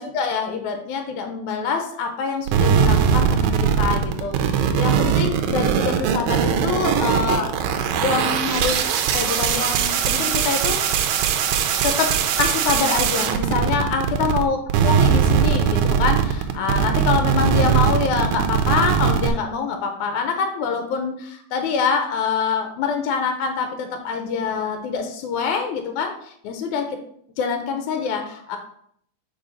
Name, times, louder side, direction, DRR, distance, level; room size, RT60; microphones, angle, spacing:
voice 1, 0.0-7.5 8.0-10.8 11.8-12.1 12.4-26.9 27.4-28.6, left 5 dB, 80° left, 5 dB, 2.0 m, -25 dB
sound 1, 2.5-14.4 14.7-19.3, right 7 dB, 80° right, 1.9 m, -20 dB
5.0 x 4.7 x 5.2 m, 0.67 s
omnidirectional pair, 3.5 m